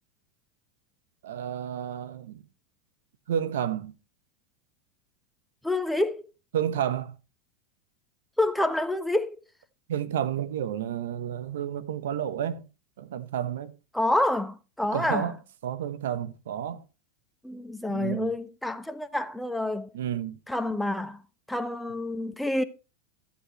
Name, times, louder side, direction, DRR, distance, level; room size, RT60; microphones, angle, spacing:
voice 1, 1.2-2.4 3.3-3.9 6.5-7.1 9.9-12.7 13.0-13.7 14.9-15.3 15.6-16.8 17.9-18.4 19.9-20.4, right 9 dB, 75° right, 1.1 m, -31 dB
voice 2, 5.6-6.2 8.4-9.4 13.9-15.3 17.4-19.9 20.5-21.2 21.5-22.6, left 1 dB, 5° left, 1.1 m, -28 dB
14.0 x 8.5 x 3.1 m
hypercardioid pair, 100°, 0 cm